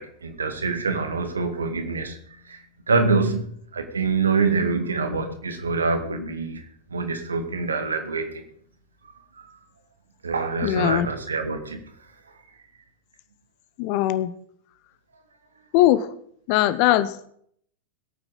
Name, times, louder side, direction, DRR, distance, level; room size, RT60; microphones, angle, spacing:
voice 1, 0.0-6.7 6.9-8.5 9.4-9.6 10.2-11.9, right 4 dB, 75° right, 6 dB, 2.0 m, -26 dB
voice 2, 10.6-11.1 13.8-14.3 15.7-16.1 16.5-17.3, left 14 dB, 45° left, 15 dB, 0.9 m, -20 dB
21.0 x 9.0 x 4.2 m, 0.65 s
figure-of-eight pair, 90°, 0 cm